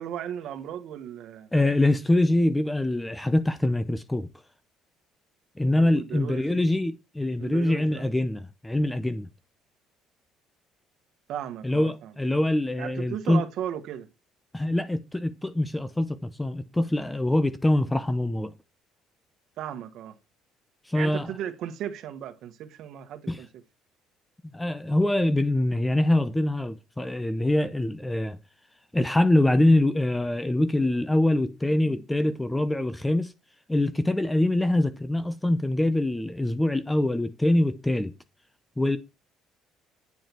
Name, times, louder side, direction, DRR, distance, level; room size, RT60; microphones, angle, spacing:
voice 1, 0.0-1.5 5.8-6.6 7.4-8.1 11.3-12.1 12.8-14.1 19.6-20.1 20.9-23.5, right 10 dB, 65° right, 1.5 m, -36 dB
voice 2, 1.5-4.3 5.6-9.3 11.6-13.5 14.5-18.5 20.9-21.3 23.3-23.4 24.5-28.4 28.9-33.3 33.7-38.1 38.8-39.0, left 1 dB, 5° left, 0.8 m, -24 dB
9.6 x 7.7 x 4.5 m
cardioid pair, 125°, 0 cm